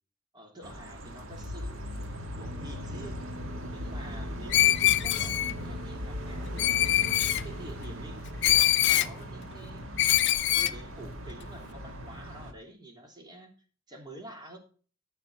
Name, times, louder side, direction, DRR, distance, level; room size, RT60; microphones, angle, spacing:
voice 1, 0.3-1.9 2.3-3.2 3.7-7.0 7.3-10.0 10.5-13.5 13.9-14.6, right 1 dB, 20° right, 3.3 m, -48 dB
sound 1, 0.6-12.5, right 1 dB, 70° right, 1.8 m, -41 dB
sound 2, 1.3-9.3, left 1 dB, 55° right, 1.2 m, -40 dB
Screech, 4.5-5.5 6.6-7.4 8.4-9.1 10.0-10.7, left 13 dB, 60° left, 0.6 m, -23 dB
14.0 x 5.9 x 6.2 m
head